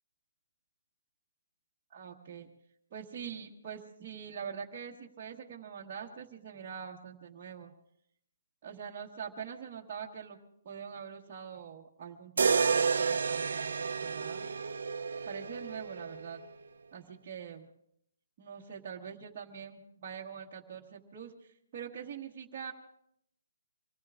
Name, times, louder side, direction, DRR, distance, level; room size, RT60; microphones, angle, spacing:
voice 1, 1.9-2.5 2.9-7.7 8.6-10.4 10.6-14.5 15.2-16.4 16.9-17.7 18.4-22.7, right 7 dB, 20° right, -7 dB, 1.4 m, -44 dB
sound 1, 12.4-16.4, right 5 dB, 70° right, 0.7 m, -30 dB
26.0 x 19.0 x 2.5 m, 0.70 s
hypercardioid pair, 180°, 0 cm